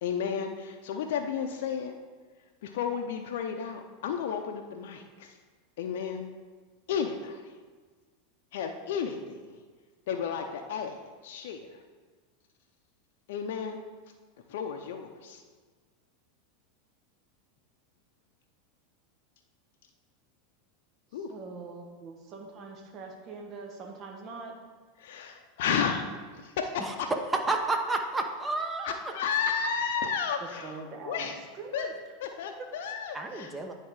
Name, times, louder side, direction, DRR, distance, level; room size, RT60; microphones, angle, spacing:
voice 1, 0.0-1.9 2.6-5.3 5.8-6.3 6.9-7.5 8.5-9.6 10.1-11.7 13.3-13.8 14.5-15.4 21.1-21.3 25.0-26.0 26.4-27.1 28.8-31.4 31.7-31.9 32.2-33.7, left 7 dB, 70° left, 3 dB, 0.5 m, -33 dB
voice 2, 21.1-24.6 30.4-32.0 32.6-32.7, right 4 dB, 45° right, 2 dB, 1.1 m, -43 dB
voice 3, 27.5-29.0 33.1-33.7, right 3 dB, 15° right, 4 dB, 0.9 m, -30 dB
9.4 x 3.6 x 4.7 m, 1.5 s
hypercardioid pair, 100°, 0 cm